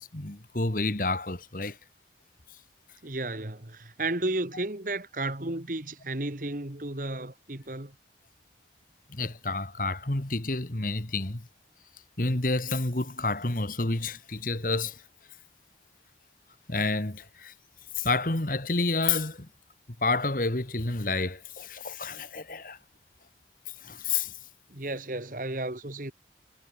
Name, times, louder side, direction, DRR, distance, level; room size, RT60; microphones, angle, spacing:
voice 1, 0.0-1.8 9.1-11.5 12.2-15.0 16.7-17.5 18.0-19.5 20.0-22.8 23.8-24.3, left 3 dB, 50° left, 1.9 m, -29 dB
voice 2, 3.0-7.9 24.7-26.1, right 2 dB, 50° right, 2.1 m, -33 dB
head